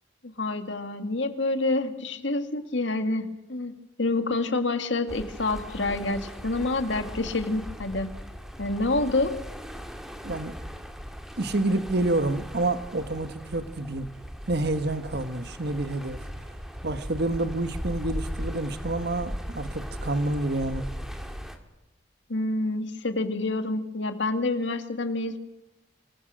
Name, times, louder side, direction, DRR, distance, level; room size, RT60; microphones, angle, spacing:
voice 1, 0.4-8.1 8.6-9.3 22.3-25.4, left 2 dB, 70° left, 2.1 m, -27 dB
sound 1, 5.1-21.6, equal, ahead, 2.1 m, -38 dB
voice 2, 10.2-10.6 11.4-14.1 14.5-16.2 16.8-20.9, right 2 dB, 55° right, 1.4 m, -28 dB
26.5 x 21.5 x 6.3 m
head